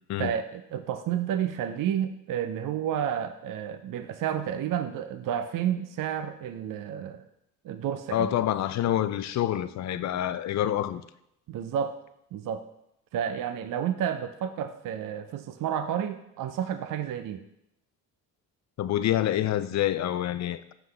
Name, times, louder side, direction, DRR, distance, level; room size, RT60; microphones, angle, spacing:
voice 1, 0.2-7.2 7.6-8.3 11.5-12.0 12.3-12.6 13.1-17.4, right 9 dB, 55° right, 0.6 m, -31 dB
voice 2, 8.1-11.0 18.8-20.7, left 12 dB, 45° left, 0.4 m, -27 dB
6.0 x 5.3 x 3.3 m
supercardioid pair, 60°, 41 cm